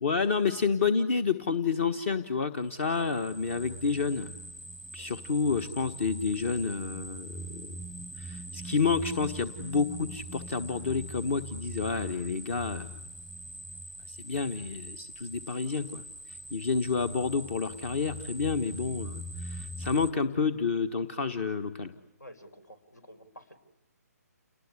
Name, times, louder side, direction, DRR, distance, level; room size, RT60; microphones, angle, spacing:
voice 1, 0.0-4.3 4.9-7.7 8.2-13.0 14.1-16.0 16.3-21.9, left 5 dB, 45° left, 12 dB, 1.4 m, -29 dB
sound 1, 2.8-20.1, right 1 dB, 5° left, 0.9 m, -43 dB
voice 2, 22.2-23.6, equal, 80° left, 11 dB, 5.1 m, -51 dB
29.0 x 20.0 x 9.9 m, 1.0 s
figure-of-eight pair, 140°, 9 cm